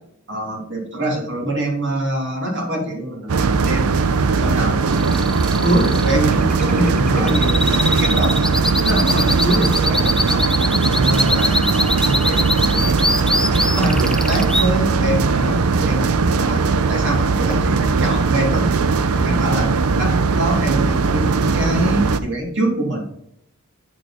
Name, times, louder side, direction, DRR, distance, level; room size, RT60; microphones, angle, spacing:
voice 1, 0.3-4.0 4.4-4.8 5.6-8.5 8.8-10.5 10.9-13.0 13.7-16.1 16.4-18.7 19.1-19.7 20.0-23.1, right 1 dB, 55° right, -1 dB, 3.0 m, -24 dB
sound 1, 3.3-22.2, right 4 dB, 80° right, 0.6 m, -19 dB
sound 2, 4.9-14.7, left 1 dB, 5° left, 0.4 m, -22 dB
8.8 x 4.9 x 4.2 m, 0.73 s
head